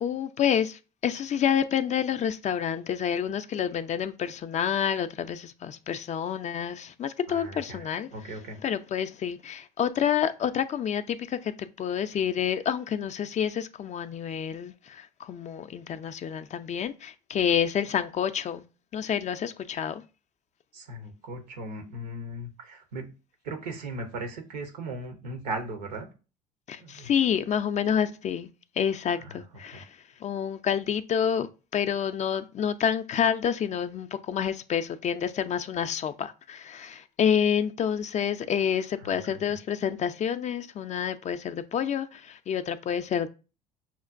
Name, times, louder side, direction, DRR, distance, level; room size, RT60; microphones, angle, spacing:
voice 1, 0.0-8.1 8.6-18.6 18.9-20.0 26.7-28.5 28.8-29.9 30.2-31.5 31.7-43.3, left 8 dB, 35° left, 0.4 m, -28 dB
voice 2, 7.3-8.6 20.7-23.1 23.4-26.1 26.8-27.1 29.2-29.5 29.7-29.8 39.0-39.6, right 2 dB, 85° right, 0.8 m, -38 dB
5.7 x 2.2 x 2.5 m
hypercardioid pair, 65°, 20 cm